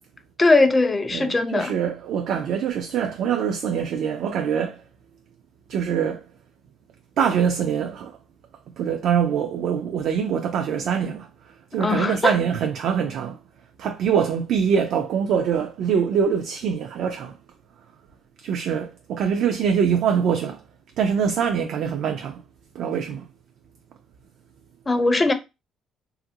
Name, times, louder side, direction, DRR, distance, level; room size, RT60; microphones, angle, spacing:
voice 1, 0.4-1.7 11.8-12.3 24.9-25.3, left 3 dB, 20° left, 0.4 m, -19 dB
voice 2, 1.1-4.8 5.7-6.3 7.2-8.2 8.8-13.4 13.8-17.4 18.4-20.6 21.0-22.4 22.7-23.3, right 7 dB, 65° right, 0.3 m, -24 dB
2.9 x 2.5 x 2.7 m
cardioid pair, 125°, 0 cm